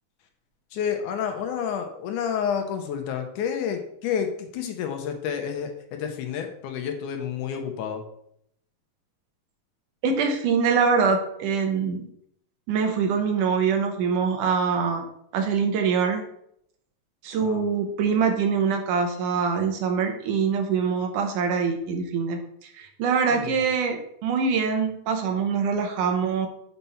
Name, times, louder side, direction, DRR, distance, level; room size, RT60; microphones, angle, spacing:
voice 1, 0.7-8.0 17.4-17.6 23.3-23.5, left 7 dB, 75° left, 5 dB, 2.2 m, -29 dB
voice 2, 10.0-12.1 12.7-15.1 15.3-16.2 17.2-26.5, right 5 dB, 75° right, 4 dB, 2.4 m, -24 dB
6.9 x 4.3 x 5.6 m, 0.71 s
omnidirectional pair, 3.8 m